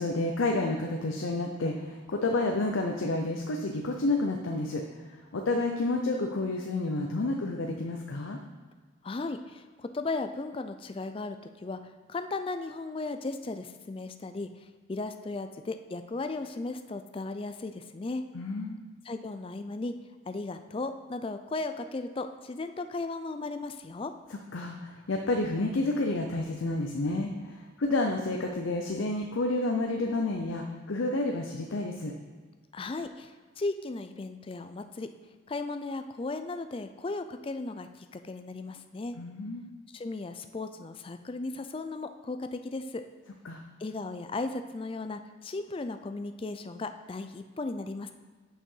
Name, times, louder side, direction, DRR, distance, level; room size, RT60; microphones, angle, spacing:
voice 1, 0.0-4.8 5.1-8.4 18.3-18.8 24.3-32.1 39.2-39.6 43.4-43.6, left 2 dB, 80° left, 2 dB, 0.6 m, -30 dB
voice 2, 9.0-11.4 11.6-11.8 12.1-14.5 14.9-18.2 19.0-19.9 20.3-24.1 32.7-35.1 35.5-39.2 39.9-43.0 43.8-48.1, left 3 dB, 25° left, 8 dB, 0.3 m, -36 dB
6.7 x 5.6 x 5.5 m, 1.4 s
head